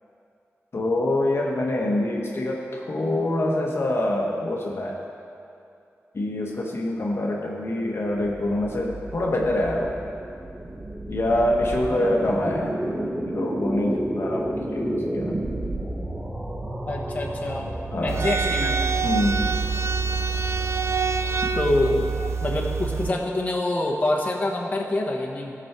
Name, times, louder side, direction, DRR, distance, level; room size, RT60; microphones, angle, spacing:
voice 1, 0.7-5.0 6.1-9.9 11.1-12.8 13.3-15.4 17.9-18.2 19.0-19.6, left 1 dB, 55° left, -1 dB, 1.1 m, -25 dB
sound 1, 8.2-21.4, right 1 dB, 15° right, 0.9 m, -32 dB
voice 2, 16.9-17.7 18.0-18.8 21.5-22.1 22.4-25.5, left 2 dB, 30° left, -2 dB, 1.2 m, -25 dB
sound 2, 18.1-23.1, right 5 dB, 65° right, 0.5 m, -25 dB
16.5 x 6.1 x 4.7 m, 2.6 s
wide cardioid pair, 110°, 5 cm